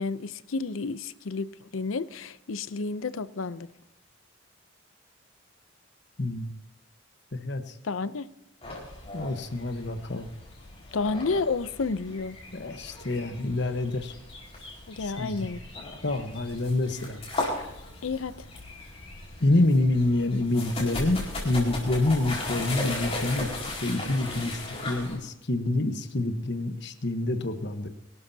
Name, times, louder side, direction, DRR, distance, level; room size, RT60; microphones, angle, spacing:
voice 1, 0.0-3.7 7.8-8.3 10.9-12.4 14.9-15.6 18.0-18.5, left 4 dB, 85° left, 15 dB, 0.6 m, -31 dB
voice 2, 6.2-6.5 7.3-7.7 9.1-10.3 12.5-14.1 15.2-15.3 16.0-17.2 19.4-21.2 21.4-23.5 23.8-27.9, left 2 dB, 60° left, 8 dB, 1.2 m, -27 dB
sound 1, 8.6-25.2, left 2 dB, 30° left, 4.6 m, -37 dB
24.0 x 12.5 x 2.8 m, 0.87 s
head